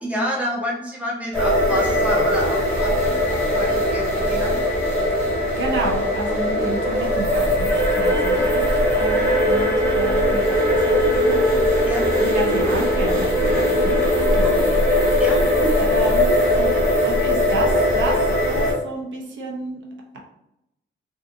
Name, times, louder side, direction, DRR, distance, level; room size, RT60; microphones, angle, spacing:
voice 1, 0.0-2.9 3.3-4.5 8.3-8.5 11.9-12.1 14.6-14.7 15.2-15.9, equal, 5° right, -3 dB, 0.5 m, -28 dB
sound 1, 1.3-18.7, left 1 dB, 10° left, 0.9 m, -20 dB
voice 2, 5.6-11.4 12.3-14.9 15.9-16.7 17.0-19.8 20.1-20.2, right 2 dB, 75° right, 0 dB, 0.6 m, -31 dB
2.5 x 2.5 x 2.5 m, 0.85 s
wide cardioid pair, 180°, 20 cm